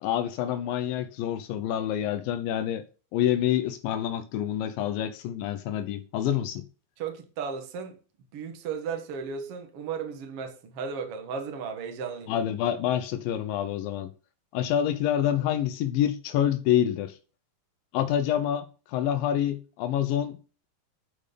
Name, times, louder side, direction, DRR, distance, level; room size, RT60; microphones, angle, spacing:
voice 1, 0.0-2.8 3.1-6.7 12.3-14.1 14.5-17.2 17.9-20.4, left 10 dB, 85° left, 2.5 m, -27 dB
voice 2, 7.0-8.0 8.3-12.3, right 6 dB, 50° right, 2.2 m, -35 dB
11.0 x 5.0 x 6.8 m
omnidirectional pair, 4.0 m